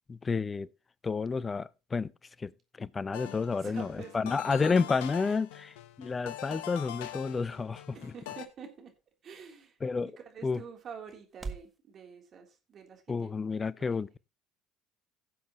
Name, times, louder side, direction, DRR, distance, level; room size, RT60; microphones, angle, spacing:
voice 1, 0.1-0.7 1.0-2.1 2.4-2.5 2.8-8.1 9.8-10.1 10.4-10.6 13.1-14.2, left 4 dB, 30° left, 0.6 m, -30 dB
sound 1, 3.1-8.5, left 12 dB, 80° left, 1.0 m, -43 dB
voice 2, 3.3-4.4 5.2-5.4 7.9-8.9 9.2-9.8 10.2-13.3 13.8-14.0, right 6 dB, 50° right, 3.4 m, -48 dB
sound 2, 5.5-11.8, right 4 dB, 25° right, 1.8 m, -50 dB
17.0 x 7.5 x 3.0 m
hypercardioid pair, 65°, 0 cm